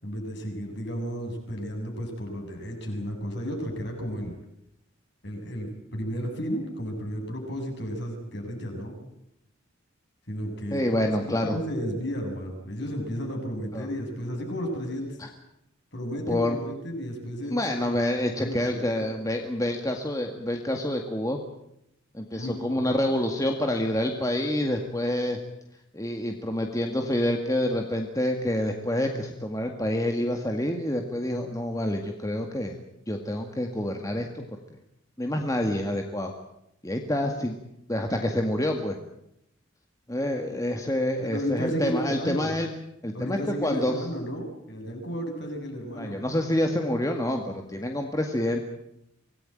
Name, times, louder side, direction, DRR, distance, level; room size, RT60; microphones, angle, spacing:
voice 1, 0.0-4.3 5.2-9.0 10.3-11.1 11.4-15.1 15.9-17.8 18.4-19.1 22.3-23.0 41.2-42.5 43.1-46.2, equal, 55° left, 2 dB, 7.4 m, -33 dB
voice 2, 10.7-11.6 13.7-13.9 15.2-15.3 16.3-16.6 17.5-21.4 22.1-25.4 25.9-32.8 33.1-34.4 35.2-36.3 36.8-37.6 37.9-39.0 40.1-42.7 43.0-44.1 46.0-48.6, left 1 dB, 15° left, 3 dB, 1.9 m, -27 dB
25.5 x 18.5 x 9.1 m, 0.82 s
head